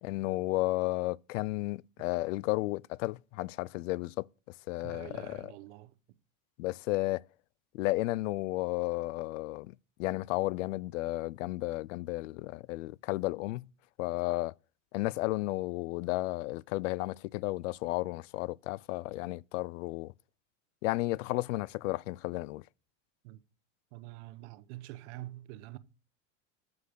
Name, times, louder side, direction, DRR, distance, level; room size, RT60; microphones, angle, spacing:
voice 1, 0.0-4.3 4.7-5.5 6.6-7.2 7.7-13.7 14.0-14.5 14.9-20.1 20.8-22.6, left 20 dB, 85° left, 0.5 m, -33 dB
voice 2, 4.8-5.9 23.2-23.4 23.9-25.8, right 17 dB, 65° right, 1.0 m, -46 dB
8.1 x 8.0 x 6.5 m
supercardioid pair, 145°, 37 cm